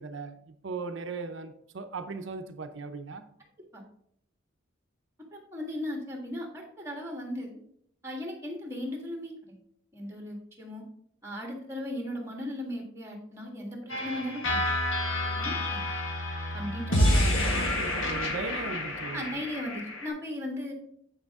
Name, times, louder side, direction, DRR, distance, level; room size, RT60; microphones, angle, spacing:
voice 1, 0.0-3.2 16.9-19.3, right 4 dB, 65° right, 0.6 m, -38 dB
voice 2, 5.3-7.5 8.0-9.3 9.9-10.8 11.2-14.6 15.3-15.8 16.5-17.7 19.1-20.7, left 1 dB, 15° right, 1.6 m, -37 dB
sound 1, 13.9-20.1, left 1 dB, 75° left, 1.6 m, -28 dB
8.1 x 6.6 x 3.6 m
head